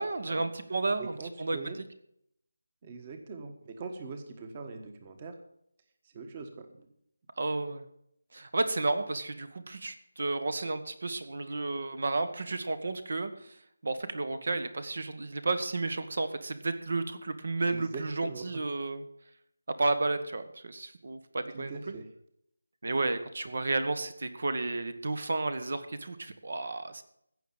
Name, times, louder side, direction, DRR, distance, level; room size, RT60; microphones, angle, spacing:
voice 1, 0.0-1.6 7.4-7.8 8.3-13.5 13.8-19.0 19.7-21.8 22.8-27.0, right 3 dB, 60° right, 11 dB, 1.5 m, -32 dB
voice 2, 1.0-1.8 2.8-5.3 6.1-6.9 17.7-18.4 21.5-22.0, right 4 dB, 25° right, 6 dB, 1.4 m, -42 dB
16.0 x 6.6 x 7.3 m, 0.72 s
figure-of-eight pair, 170°, 0 cm